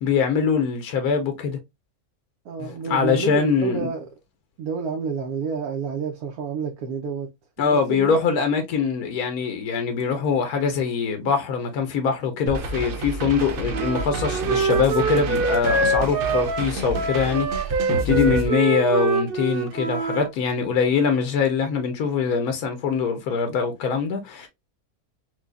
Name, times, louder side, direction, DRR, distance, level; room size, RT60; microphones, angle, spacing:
voice 1, 0.0-1.6 2.6-3.9 7.6-24.5, left 6 dB, 85° left, 1.3 m, -23 dB
voice 2, 2.4-4.1 4.6-7.3 7.6-8.2 18.1-18.4, right 5 dB, 85° right, 1.2 m, -29 dB
sound 1, 12.5-18.5, right 2 dB, 70° right, 1.1 m, -30 dB
Wind instrument woodwind instrument, 13.7-20.3, right 3 dB, 45° right, 0.8 m, -25 dB
4.7 x 2.3 x 2.3 m
omnidirectional pair, 1.5 m